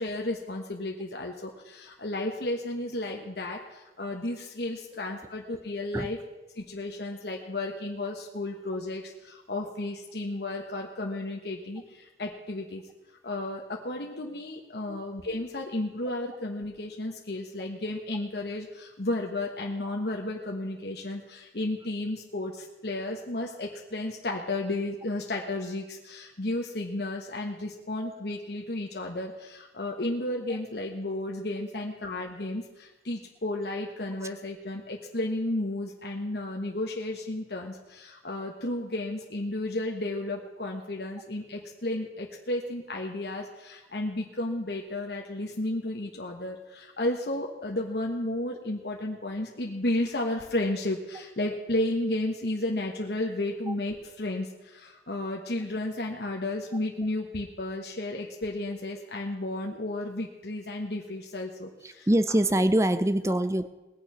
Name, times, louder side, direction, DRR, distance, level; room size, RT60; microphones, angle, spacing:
voice 1, 0.0-6.2 6.6-12.8 13.2-62.1 63.3-63.4, left 1 dB, 65° left, 0 dB, 1.2 m, -33 dB
voice 2, 61.8-63.7, right 1 dB, 15° right, 13 dB, 0.5 m, -24 dB
20.0 x 7.1 x 6.2 m, 1.1 s
head